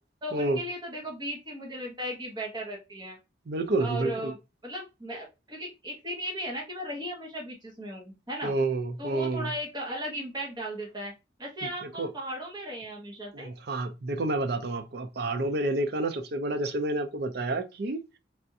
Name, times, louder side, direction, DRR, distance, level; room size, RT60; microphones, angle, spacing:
voice 1, 0.2-3.2 3.8-4.4 4.6-8.5 9.0-11.1 11.4-13.5, equal, 25° right, 1.0 m, -36 dB
voice 2, 3.5-4.3 8.4-9.5 12.0-12.1 13.3-18.0, right 2 dB, 55° right, 0.5 m, -29 dB
3.4 x 2.5 x 2.6 m
head